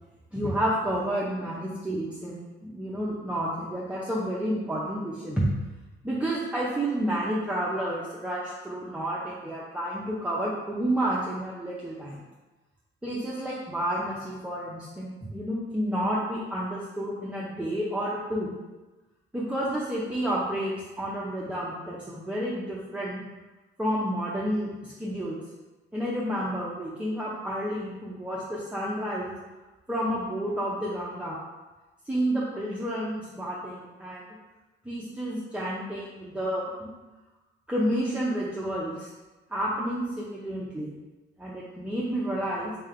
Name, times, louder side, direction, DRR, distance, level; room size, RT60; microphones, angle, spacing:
voice 1, 0.3-5.5 6.0-12.2 13.0-18.5 19.3-23.2 23.8-25.4 25.9-29.3 29.9-31.4 32.1-34.2 34.8-36.9 37.7-39.1 39.5-41.0 41.4-42.8, right 1 dB, 5° right, -6 dB, 0.6 m, -30 dB
3.3 x 3.2 x 3.7 m, 1.1 s
cardioid pair, 90°, 20 cm